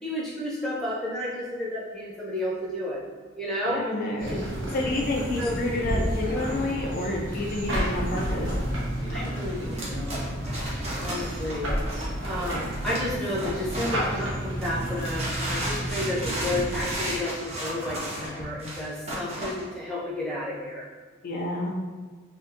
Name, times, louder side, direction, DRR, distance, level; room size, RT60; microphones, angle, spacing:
voice 1, 0.0-3.0 3.4-3.8 4.3-4.4 5.1-5.6 7.7-7.9 9.1-10.4 11.0-11.7 12.2-20.9, left 1 dB, ahead, -7 dB, 0.7 m, -32 dB
voice 2, 3.7-4.4 4.7-8.5 21.2-21.7, left 2 dB, 45° left, -1 dB, 0.3 m, -29 dB
sound 1, 4.2-16.9, equal, 65° right, 0.9 m, -31 dB
sound 2, 7.6-8.6 8.8-10.6 11.9-12.0 12.2-12.6 12.9-14.3 15.1-15.2 15.7-18.4, equal, 70° left, 0.7 m, -45 dB
sound 3, 9.7-14.2 14.6-19.7, right 1 dB, 30° right, 0.7 m, -34 dB
3.5 x 2.5 x 2.5 m, 1.5 s
head